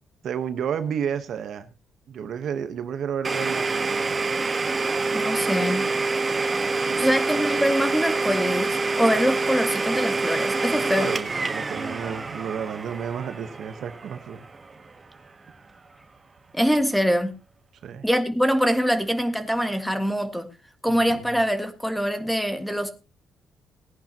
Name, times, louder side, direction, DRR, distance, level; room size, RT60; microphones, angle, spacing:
voice 1, 0.2-1.7 2.1-4.5 6.8-7.2 10.8-14.5 17.8-18.1 20.9-21.3, right 8 dB, 65° right, 1.2 m, -32 dB
Domestic sounds home sounds, 3.2-14.9, right 3 dB, 30° right, 1.3 m, -26 dB
voice 2, 5.1-5.8 7.0-11.1 16.5-17.3 18.0-20.5 20.8-22.9, equal, ahead, 1.8 m, -24 dB
18.0 x 10.5 x 3.0 m
cardioid pair, 90°, 0 cm